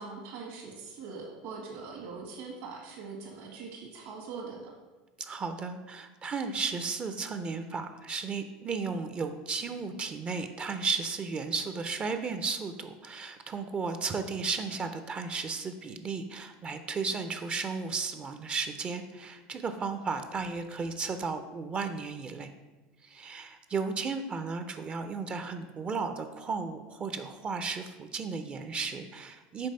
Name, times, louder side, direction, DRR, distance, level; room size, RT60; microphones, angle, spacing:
voice 1, 0.0-4.7, right 4 dB, 60° right, -2 dB, 1.5 m, -42 dB
voice 2, 5.2-22.5 23.0-29.7, right 4 dB, 30° right, 8 dB, 0.4 m, -34 dB
5.3 x 3.6 x 5.4 m, 1.2 s
supercardioid pair, 110°, 4 cm